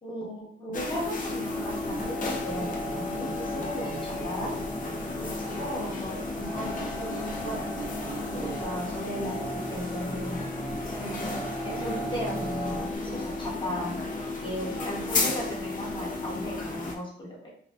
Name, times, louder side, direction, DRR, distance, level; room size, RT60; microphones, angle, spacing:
voice 1, 0.0-4.5 5.2-10.4 11.0-14.0 14.4-17.5, equal, 25° left, -4 dB, 1.0 m, -36 dB
sound 1, 0.7-17.0, left 3 dB, 40° left, 0.5 m, -34 dB
sound 2, 1.5-13.0, right 1 dB, 15° right, 0.5 m, -38 dB
2.5 x 2.3 x 2.2 m, 0.63 s
cardioid pair, 90°, 20 cm